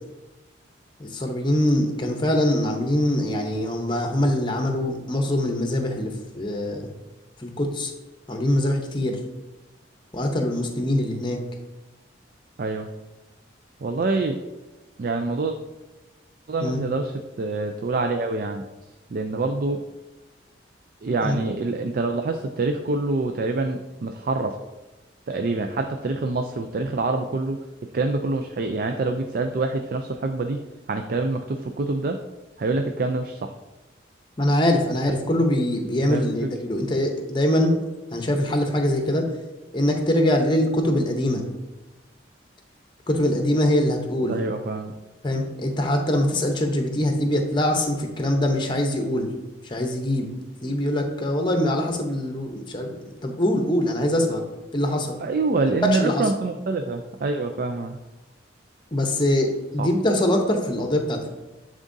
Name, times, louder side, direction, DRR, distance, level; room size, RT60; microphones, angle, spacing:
voice 1, 1.0-6.9 7.4-7.9 8.3-9.2 10.1-11.4 16.6-16.8 21.2-21.4 34.4-37.8 38.1-39.3 39.7-41.4 43.1-44.4 45.2-49.3 49.6-50.3 50.6-54.4 54.7-55.2 55.8-56.3 58.9-61.3, left 1 dB, 25° left, 3 dB, 0.8 m, -23 dB
voice 2, 12.6-12.9 13.8-14.4 15.0-15.6 16.5-18.6 19.1-19.8 21.0-24.6 25.3-27.6 27.9-30.6 30.9-32.2 32.6-33.5 36.0-36.2 44.2-44.9 55.2-58.0 59.8-59.9, right 3 dB, 50° right, 5 dB, 0.4 m, -26 dB
11.0 x 3.6 x 2.6 m, 1.1 s
head